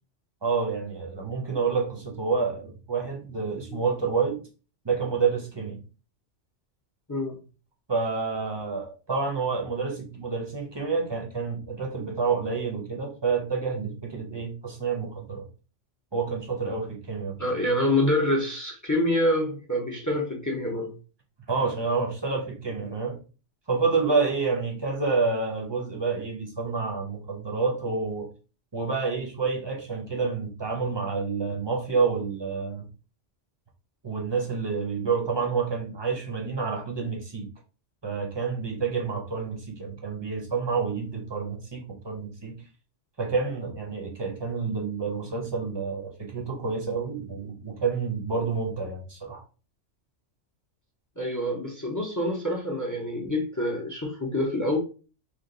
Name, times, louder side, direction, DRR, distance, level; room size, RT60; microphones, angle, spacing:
voice 1, 0.4-4.4 4.8-5.8 7.9-15.4 16.1-17.4 21.5-23.2 23.7-28.3 28.7-32.9 34.0-37.5 38.0-42.6 43.2-49.4, right 4 dB, 25° right, 0 dB, 0.9 m, -28 dB
voice 2, 7.1-7.4 17.4-20.9 51.2-54.8, left 1 dB, 20° left, 1 dB, 0.7 m, -26 dB
3.4 x 2.5 x 3.8 m, 0.35 s
omnidirectional pair, 1.2 m